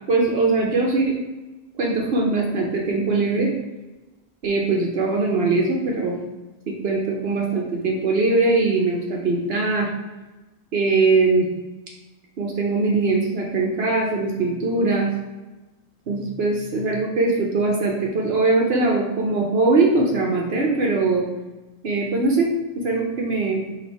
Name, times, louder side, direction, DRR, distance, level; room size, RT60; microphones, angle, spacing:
voice 1, 0.1-1.1 1.8-3.5 4.4-6.2 6.7-9.9 10.7-11.5 12.4-15.1 16.1-21.2 21.8-22.5 22.8-23.6, right 3 dB, 75° right, -1 dB, 1.0 m, -21 dB
5.0 x 2.6 x 4.1 m, 1.1 s
omnidirectional pair, 1.0 m